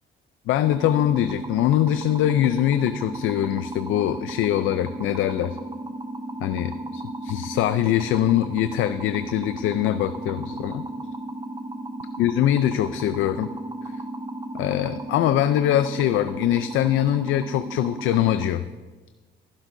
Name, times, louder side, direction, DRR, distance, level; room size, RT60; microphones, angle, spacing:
voice 1, 0.5-5.6 6.4-10.8 12.2-13.5 13.8-13.9 14.5-18.6, left 12 dB, 85° left, 11 dB, 0.4 m, -23 dB
sound 1, 0.6-18.5, right 2 dB, 20° right, 0.9 m, -34 dB
15.0 x 11.5 x 2.6 m, 1.2 s
cardioid pair, 90°, 20 cm